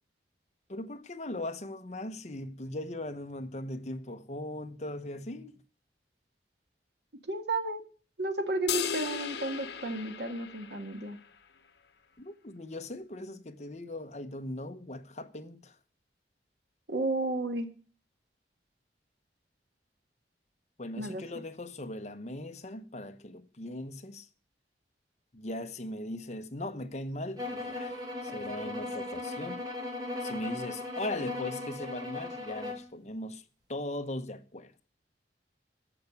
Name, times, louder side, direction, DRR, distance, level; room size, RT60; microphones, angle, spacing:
voice 1, 0.7-5.6 12.2-15.7 20.8-24.3 25.3-29.6 30.2-33.4 33.7-34.7, left 1 dB, 40° left, 1.0 m, -39 dB
voice 2, 7.3-7.8 8.2-11.2 16.9-17.7 21.0-21.2, right 2 dB, 75° right, 1.8 m, -32 dB
sound 1, 8.7-11.2, left 7 dB, 75° left, 0.8 m, -36 dB
sound 2, 27.4-32.9, left 2 dB, 25° right, 2.1 m, -38 dB
14.0 x 5.9 x 8.3 m
head